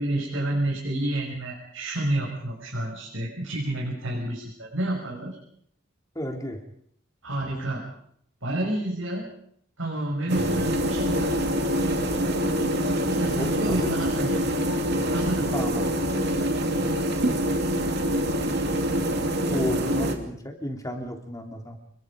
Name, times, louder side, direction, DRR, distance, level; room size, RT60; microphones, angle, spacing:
voice 1, 0.0-5.4 7.2-7.8 8.4-9.3 9.8-11.5 13.0-14.4 15.1-15.5 19.5-20.0, right 1 dB, 70° right, -3 dB, 6.4 m, -29 dB
voice 2, 6.1-6.6 10.3-10.6 13.3-13.9 15.5-15.9 19.5-21.8, equal, 15° left, 3 dB, 3.1 m, -33 dB
sound 1, 10.3-20.1, equal, 50° right, 2.8 m, -25 dB
29.0 x 22.5 x 5.2 m, 0.67 s
head